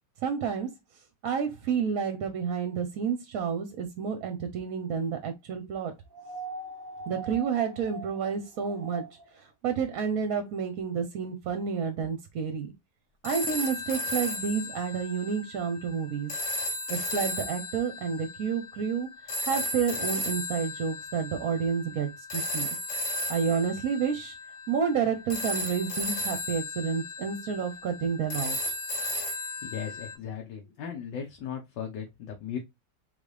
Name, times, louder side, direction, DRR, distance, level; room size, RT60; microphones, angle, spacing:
voice 1, 0.2-0.7 1.2-5.9 7.1-9.0 9.4-12.7 13.2-16.3 16.9-19.1 19.4-22.7 23.3-24.3 24.7-28.6, right 6 dB, 60° right, 1.1 m, -30 dB
sound 1, 6.1-9.4 10.8-10.9, right 4 dB, 30° right, 0.4 m, -41 dB
sound 2, 13.2-30.1, left 1 dB, 45° left, 1.2 m, -35 dB
voice 2, 29.6-32.6, left 8 dB, 80° left, 1.5 m, -37 dB
4.0 x 3.5 x 3.3 m
omnidirectional pair, 1.9 m